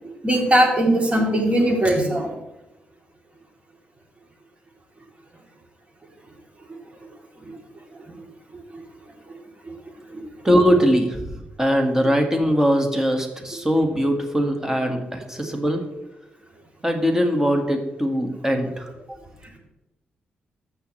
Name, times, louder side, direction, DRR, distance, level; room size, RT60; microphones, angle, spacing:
voice 1, 0.2-2.3 10.1-10.2, right 1 dB, 35° right, -1 dB, 3.3 m, -19 dB
voice 2, 10.4-11.3 11.6-15.8 16.8-18.9, equal, 15° right, 4 dB, 1.9 m, -21 dB
15.0 x 5.8 x 3.3 m, 0.95 s
supercardioid pair, 60°, 4 cm